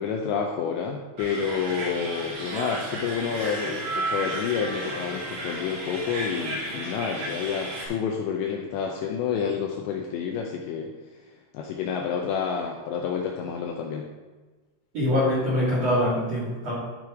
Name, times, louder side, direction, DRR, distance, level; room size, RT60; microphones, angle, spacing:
voice 1, 0.0-10.9 11.5-14.1, left 6 dB, 80° left, 1 dB, 2.6 m, -29 dB
sound 1, 1.2-7.9, right 1 dB, 70° right, 4.3 m, -33 dB
voice 2, 14.9-16.7, left 1 dB, 45° right, -7 dB, 2.2 m, -24 dB
13.0 x 4.6 x 4.7 m, 1.3 s
omnidirectional pair, 5.8 m